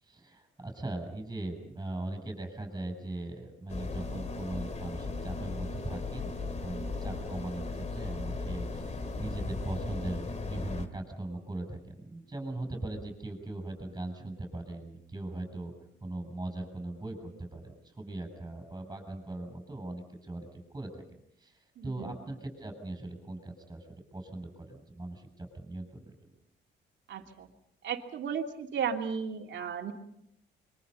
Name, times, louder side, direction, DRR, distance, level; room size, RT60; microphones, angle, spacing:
voice 1, 0.0-15.7 16.0-21.0 21.4-26.1, right 2 dB, 15° right, 5 dB, 7.5 m, -40 dB
sound 1, 3.7-10.9, left 3 dB, 35° left, 2.3 m, -37 dB
voice 2, 21.8-22.2 27.1-27.5 27.8-29.9, right 7 dB, 65° right, 3 dB, 3.0 m, -35 dB
26.5 x 23.5 x 5.6 m, 0.73 s
cardioid pair, 90°, 20 cm